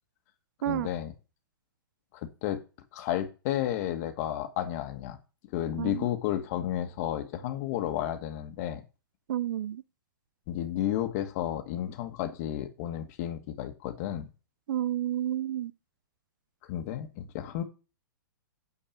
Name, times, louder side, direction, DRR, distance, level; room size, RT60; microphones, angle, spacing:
voice 1, 0.7-1.1 2.2-2.6 2.9-5.2 5.5-8.8 10.5-14.3 16.7-17.6, left 12 dB, 40° left, 1.6 m, -32 dB
voice 2, 9.3-9.8 14.7-15.7, right 12 dB, 60° right, 0.5 m, -30 dB
9.0 x 4.6 x 7.2 m
hypercardioid pair, 140°, 12 cm